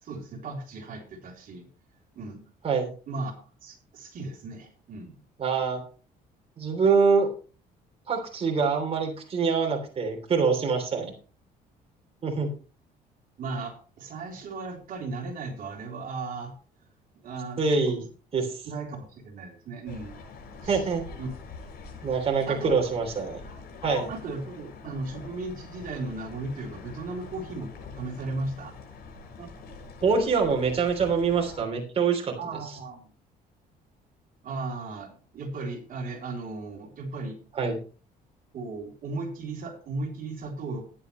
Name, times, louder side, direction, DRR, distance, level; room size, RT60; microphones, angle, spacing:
voice 1, 0.0-1.7 2.1-2.4 3.1-3.3 3.6-5.1 13.4-16.6 17.2-18.0 18.7-20.1 20.6-20.9 21.2-21.3 22.5-22.8 24.1-28.7 32.4-33.0 34.4-37.4 38.5-40.8, right 3 dB, 55° right, 2 dB, 3.5 m, -36 dB
voice 2, 5.4-5.8 6.6-7.3 8.1-11.1 12.2-12.5 17.6-18.0 18.3-18.7 20.7-21.1 22.0-23.4 23.8-24.1 29.4-29.5 30.0-32.4 37.5-37.8, right 5 dB, 35° right, 2 dB, 3.3 m, -25 dB
sound 1, 19.9-31.6, left 4 dB, 65° left, 6.8 m, -44 dB
14.5 x 10.5 x 3.2 m, 0.37 s
cardioid pair, 110°, 17 cm